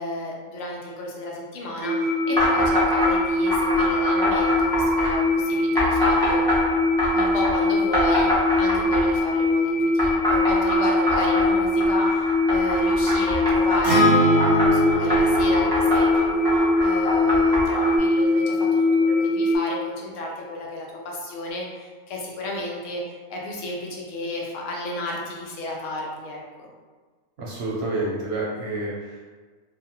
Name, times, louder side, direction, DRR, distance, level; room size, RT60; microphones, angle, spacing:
voice 1, 0.0-6.7 7.1-26.7, left 1 dB, 75° left, -2 dB, 0.9 m, -32 dB
sound 1, 1.8-19.6, left 2 dB, 60° left, 1.2 m, -22 dB
sound 2, 2.4-3.1 3.5-5.1 5.8-7.5 7.9-9.2 10.0-13.8 14.4-18.0, left 1 dB, 5° left, 0.5 m, -24 dB
Acoustic guitar, 13.8-18.1, right 1 dB, 30° left, 0.9 m, -25 dB
voice 2, 27.4-29.3, right 2 dB, 60° right, -5 dB, 0.8 m, -29 dB
2.5 x 2.4 x 2.8 m, 1.4 s
omnidirectional pair, 1.4 m